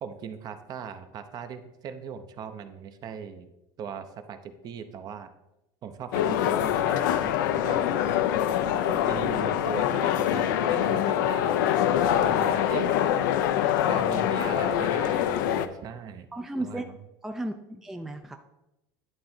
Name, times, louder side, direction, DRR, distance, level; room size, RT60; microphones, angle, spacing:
voice 1, 0.0-3.5 3.8-5.3 5.8-7.9 8.9-11.6 11.9-12.9 13.8-16.3 16.6-17.0, right 7 dB, 40° right, 9 dB, 0.7 m, -39 dB
sound 1, 6.1-15.7, left 10 dB, 85° left, 0.5 m, -24 dB
voice 2, 16.3-16.8 17.2-18.4, right 1 dB, 5° right, 5 dB, 0.4 m, -34 dB
10.5 x 3.8 x 4.3 m, 0.93 s
supercardioid pair, 130°, 10 cm